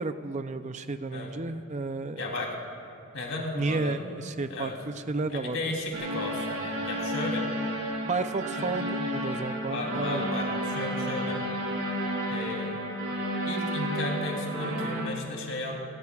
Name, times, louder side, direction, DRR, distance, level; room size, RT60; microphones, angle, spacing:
voice 1, 0.0-2.3 3.5-5.7 8.1-10.2, right 3 dB, 35° right, 9 dB, 0.5 m, -32 dB
voice 2, 2.2-2.5 3.1-4.2 4.5-4.7 5.3-7.5 8.6-9.0 9.4-11.4 12.3-12.7 13.4-15.8, left 2 dB, 65° left, -1 dB, 3.2 m, -34 dB
sound 1, 5.9-15.0, equal, 85° right, 5.0 m, -32 dB
29.5 x 18.0 x 2.4 m, 2.6 s
head